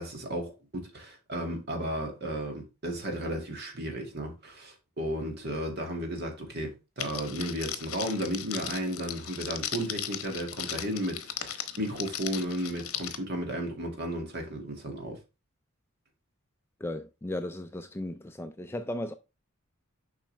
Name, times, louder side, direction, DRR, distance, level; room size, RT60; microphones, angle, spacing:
voice 1, 0.0-15.2, equal, 45° right, 2.1 m, -34 dB
Crackle, 7.0-13.2, left 10 dB, 70° left, 0.9 m, -37 dB
voice 2, 16.8-19.1, left 1 dB, 10° left, 0.3 m, -36 dB
7.4 x 5.4 x 3.3 m
head